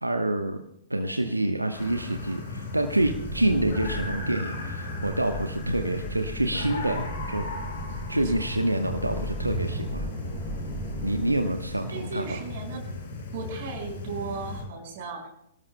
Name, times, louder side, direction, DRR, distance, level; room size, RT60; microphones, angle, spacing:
voice 1, 0.0-0.6 0.9-7.4 8.1-10.1 11.0-12.4, right 1 dB, 85° right, 5 dB, 1.0 m, -27 dB
sound 1, 1.7-14.6, left 3 dB, 55° left, 6.2 m, -36 dB
sound 2, 3.0-11.8, right 1 dB, 25° right, 5.0 m, -37 dB
voice 2, 11.9-12.8 13.3-15.3, right 4 dB, 45° right, 3 dB, 5.1 m, -36 dB
25.5 x 18.0 x 2.2 m, 0.79 s
figure-of-eight pair, 110°, 0 cm